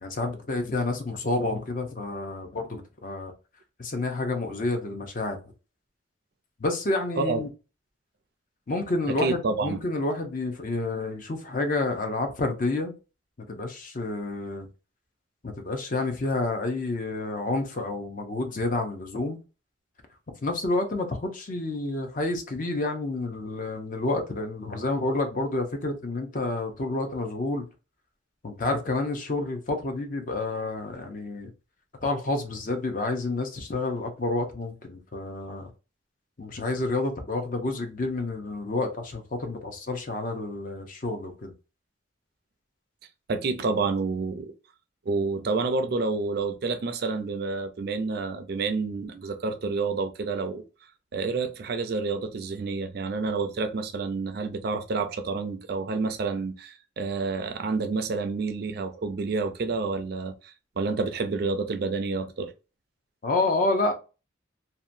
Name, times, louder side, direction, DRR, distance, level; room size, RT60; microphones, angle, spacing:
voice 1, 0.0-3.3 3.8-5.4 6.6-7.5 8.7-12.9 13.5-14.7 15.4-19.4 20.4-27.6 28.4-31.5 32.0-35.7 36.4-41.5 63.2-63.9, left 2 dB, 40° left, 0.5 m, -29 dB
voice 2, 9.1-9.8 43.3-44.5 45.1-50.6 51.1-62.5, right 4 dB, 50° right, 0.4 m, -29 dB
2.8 x 2.2 x 2.5 m
head